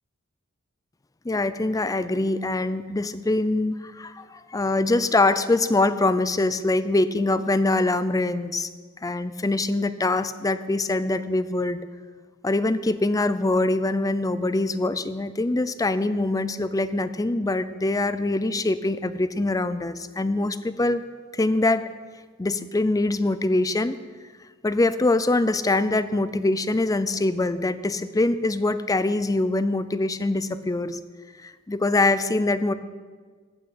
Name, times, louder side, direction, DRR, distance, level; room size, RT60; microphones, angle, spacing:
voice 1, 1.2-8.7 9.0-11.8 12.4-21.0 21.3-21.8 22.4-24.0 24.6-31.0 31.4-32.7, left 2 dB, 15° left, 13 dB, 0.5 m, -23 dB
14.5 x 6.1 x 8.6 m, 1.5 s
head